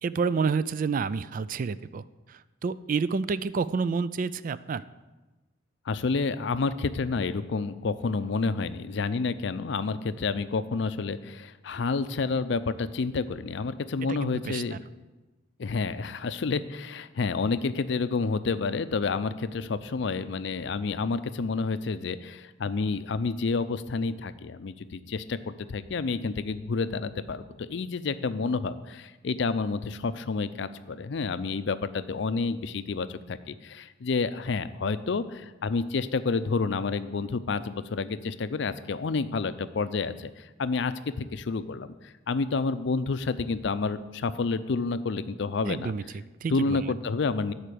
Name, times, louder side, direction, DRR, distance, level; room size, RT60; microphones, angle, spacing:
voice 1, 0.0-4.8 14.1-14.8 45.6-46.9, right 5 dB, 45° right, 16 dB, 0.3 m, -29 dB
voice 2, 5.9-14.8 15.6-41.9 42.3-45.9 46.5-47.5, left 4 dB, 65° left, 13 dB, 0.5 m, -29 dB
12.5 x 4.4 x 6.8 m, 1.1 s
head